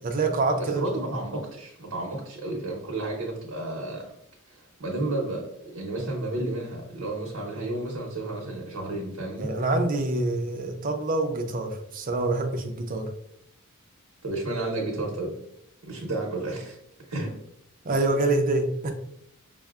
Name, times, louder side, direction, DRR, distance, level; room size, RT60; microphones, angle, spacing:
voice 1, 0.0-0.9 9.4-13.1 17.8-18.9, right 2 dB, 40° right, 5 dB, 0.5 m, -26 dB
voice 2, 0.6-4.1 4.5-5.4 5.7-9.5 14.2-15.3 15.8-16.8 17.1-17.3, right 2 dB, 90° right, -2 dB, 0.8 m, -32 dB
5.3 x 2.1 x 2.3 m, 0.77 s
head